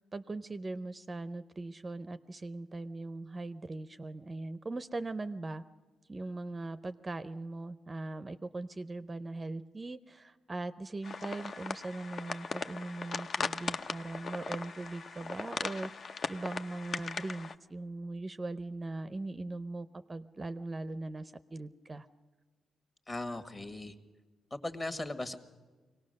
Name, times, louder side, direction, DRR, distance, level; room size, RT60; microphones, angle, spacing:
voice 1, 0.0-5.6 6.1-15.9 16.3-22.1, right 2 dB, 25° right, 12 dB, 0.5 m, -40 dB
sound 1, 11.0-17.5, left 4 dB, 50° left, 0.7 m, -38 dB
voice 2, 23.1-23.9 24.5-25.4, left 2 dB, 25° left, 10 dB, 1.5 m, -38 dB
23.5 x 18.0 x 6.5 m, 1.3 s
cardioid pair, 95°, 0 cm